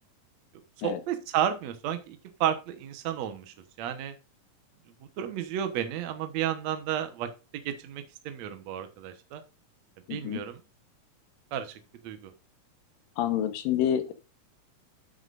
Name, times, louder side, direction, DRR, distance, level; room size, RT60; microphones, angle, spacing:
voice 1, 0.8-4.1 5.2-7.3 7.7-9.4 10.1-10.6 11.5-11.8 12.0-12.3, right 10 dB, 60° right, 8 dB, 2.1 m, -32 dB
voice 2, 10.1-10.4 13.2-14.1, left 10 dB, 75° left, 9 dB, 2.8 m, -28 dB
9.5 x 8.9 x 2.6 m, 0.30 s
omnidirectional pair, 4.0 m